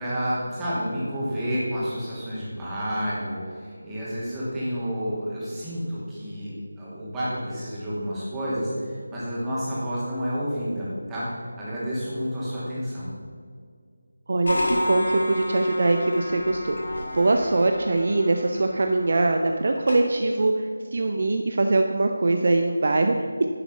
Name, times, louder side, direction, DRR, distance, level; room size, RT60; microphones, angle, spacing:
voice 1, 0.0-13.1, equal, 10° right, -10 dB, 2.5 m, -30 dB
voice 2, 14.3-23.5, right 2 dB, 45° right, 5 dB, 0.6 m, -23 dB
sound 1, 14.4-20.0, left 1 dB, 60° left, 2.4 m, -30 dB
11.0 x 7.1 x 5.7 m, 2.1 s
figure-of-eight pair, 160°, 0 cm